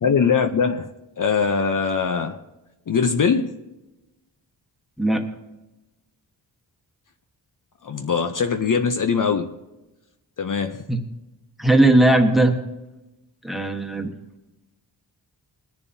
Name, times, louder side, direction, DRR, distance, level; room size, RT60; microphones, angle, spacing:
voice 1, 0.0-2.4 2.9-3.6 7.8-9.5 10.4-10.8, left 6 dB, 50° left, 0.7 m, -22 dB
voice 2, 11.6-12.5 13.4-14.1, right 1 dB, ahead, 1.3 m, -17 dB
21.5 x 10.5 x 2.7 m
wide cardioid pair, 130°, 42 cm